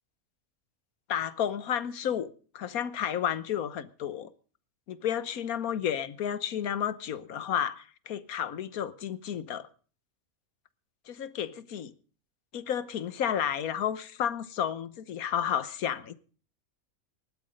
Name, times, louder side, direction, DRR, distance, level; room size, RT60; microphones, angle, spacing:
voice 1, 1.1-4.3 4.9-9.7 11.1-11.9 12.5-16.1, left 9 dB, 85° left, 1.4 m, -32 dB
18.5 x 12.0 x 5.2 m
omnidirectional pair, 1.5 m